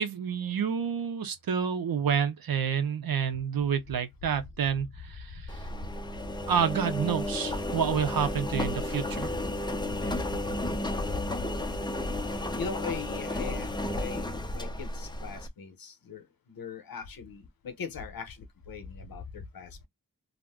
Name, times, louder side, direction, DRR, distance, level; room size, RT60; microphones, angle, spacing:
voice 1, 0.0-5.6 6.5-9.3, right 7 dB, 85° right, 0.6 m, -29 dB
Engine, 5.5-15.5, left 1 dB, 15° left, 0.4 m, -33 dB
voice 2, 10.0-10.3 12.6-18.4 18.7-19.9, left 5 dB, 80° left, 0.8 m, -40 dB
2.4 x 2.0 x 3.4 m
wide cardioid pair, 110°, 35 cm